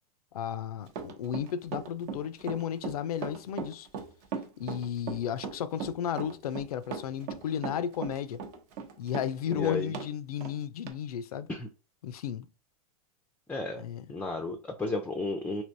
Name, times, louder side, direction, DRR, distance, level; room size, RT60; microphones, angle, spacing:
voice 1, 0.3-3.9 4.6-8.4 9.0-11.5 12.0-12.5 13.8-14.0, left 9 dB, 90° left, 0.4 m, -34 dB
Run, 0.9-10.1 10.4-10.5 10.9-11.0, right 6 dB, 50° right, 0.8 m, -37 dB
voice 2, 9.5-9.9 11.5-11.7 13.5-13.8 14.1-15.6, left 3 dB, 5° left, 0.4 m, -33 dB
3.3 x 2.9 x 2.6 m
hypercardioid pair, 120°, 19 cm